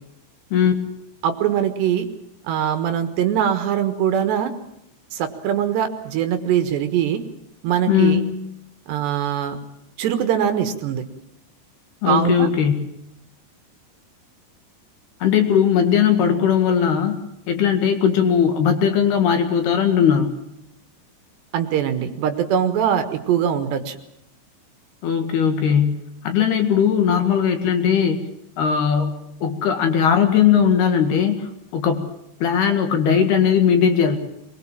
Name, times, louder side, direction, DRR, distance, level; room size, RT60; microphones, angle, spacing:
voice 1, 1.2-2.1 2.4-4.6 5.1-7.2 7.6-8.2 8.9-9.6 10.0-11.0 12.1-12.5 21.5-24.0, right 9 dB, 70° right, 8 dB, 3.4 m, -22 dB
voice 2, 7.9-8.3 12.0-12.8 15.2-17.2 17.5-20.3 25.0-26.0 26.2-28.2 28.6-29.1 29.4-32.1 32.4-34.2, left 8 dB, 60° left, 6 dB, 3.6 m, -18 dB
24.0 x 21.5 x 7.4 m, 0.80 s
omnidirectional pair, 5.6 m